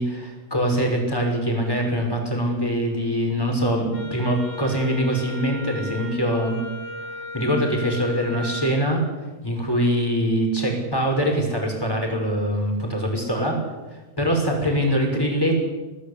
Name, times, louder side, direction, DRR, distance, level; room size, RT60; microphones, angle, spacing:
voice 1, 0.0-6.6 7.3-9.0 9.4-13.6 13.9-15.7, equal, 5° left, 1 dB, 5.8 m, -23 dB
Wind instrument woodwind instrument, 3.9-8.8, left 2 dB, 75° left, 4.9 m, -36 dB
26.0 x 18.5 x 8.5 m, 1.2 s
omnidirectional pair, 4.4 m